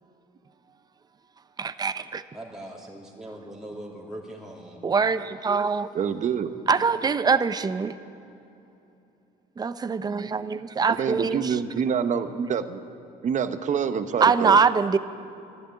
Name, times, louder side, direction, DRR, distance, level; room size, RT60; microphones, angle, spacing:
voice 1, 1.6-2.2 4.8-5.9 6.7-7.9 9.6-11.6 14.2-15.0, right 5 dB, 25° right, 12 dB, 0.6 m, -23 dB
voice 2, 2.3-4.8, right 1 dB, 5° right, -4 dB, 2.9 m, -40 dB
voice 3, 5.9-6.5 10.9-12.8 13.2-14.6, right 7 dB, 45° right, 10 dB, 0.9 m, -26 dB
13.0 x 11.5 x 9.6 m, 2.8 s
cardioid pair, 110°, 17 cm